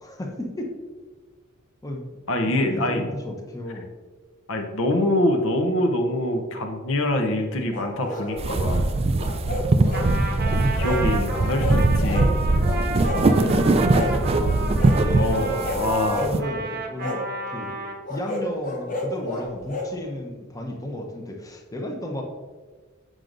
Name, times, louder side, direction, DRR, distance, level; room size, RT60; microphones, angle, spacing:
voice 1, 0.0-0.8 1.8-2.1 2.6-3.9 9.5-9.8 13.1-17.2 17.5-17.7 18.1-22.2, left 1 dB, 15° left, 1 dB, 0.7 m, -33 dB
voice 2, 2.3-3.1 4.5-8.9 10.5-12.4 15.2-16.3, left 1 dB, 70° left, 4 dB, 0.7 m, -25 dB
sound 1, 7.7-8.8 9.2-10.1 10.4-11.0 11.3-12.3 12.6-13.5 13.9-14.2 14.8-15.0 15.5-16.3 17.0-17.2 18.0-19.9, left 2 dB, 40° left, 0.9 m, -31 dB
sound 2, 8.4-16.4, right 2 dB, 30° right, 0.3 m, -21 dB
Trumpet, 9.9-18.0, right 2 dB, 45° right, 0.8 m, -32 dB
7.5 x 6.3 x 2.5 m, 1.4 s
head